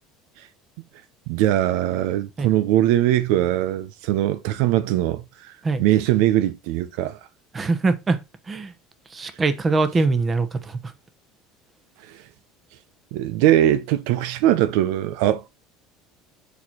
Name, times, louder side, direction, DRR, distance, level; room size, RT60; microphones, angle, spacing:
voice 1, 1.3-5.2 5.8-7.2 13.1-15.5, right 13 dB, 75° right, 0.7 m, -21 dB
voice 2, 7.5-8.2 8.5-8.7 9.1-10.9, right 3 dB, 20° right, 1.0 m, -23 dB
7.1 x 4.3 x 4.5 m
cardioid pair, 140°, 0 cm